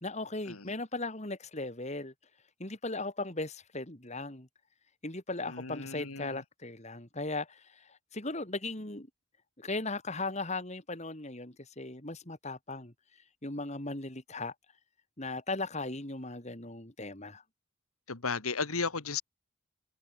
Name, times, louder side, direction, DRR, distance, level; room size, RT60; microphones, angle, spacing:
voice 1, 0.0-2.1 2.6-4.5 5.0-9.1 9.6-12.9 13.4-14.5 15.2-17.4, left 2 dB, 30° left, 2.8 m, -37 dB
voice 2, 5.5-6.4 18.1-19.2, left 4 dB, 90° left, 2.2 m, -35 dB
head